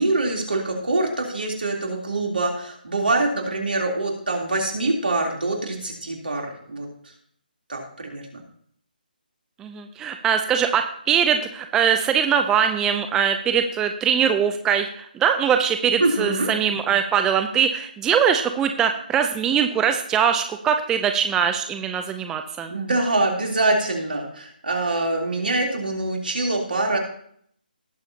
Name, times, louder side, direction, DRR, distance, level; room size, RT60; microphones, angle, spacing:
voice 1, 0.0-6.9 7.7-8.4 16.0-16.5 22.7-27.0, right 2 dB, 75° right, 1 dB, 3.3 m, -24 dB
voice 2, 9.6-22.7, right 8 dB, 10° right, 6 dB, 0.5 m, -22 dB
18.0 x 7.0 x 2.8 m, 0.64 s
figure-of-eight pair, 150°, 5 cm